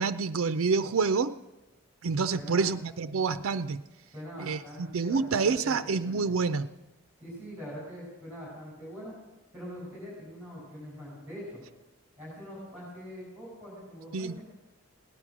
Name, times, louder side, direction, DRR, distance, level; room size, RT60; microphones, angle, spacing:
voice 1, 0.0-1.4 2.0-3.8 4.4-6.7 14.1-14.4, right 4 dB, 80° right, 10 dB, 0.5 m, -28 dB
voice 2, 2.3-2.7 4.1-5.8 6.1-6.4 7.2-9.1 9.5-11.6 12.2-14.4, equal, 10° right, -5 dB, 5.3 m, -43 dB
17.0 x 10.0 x 6.1 m, 1.1 s
head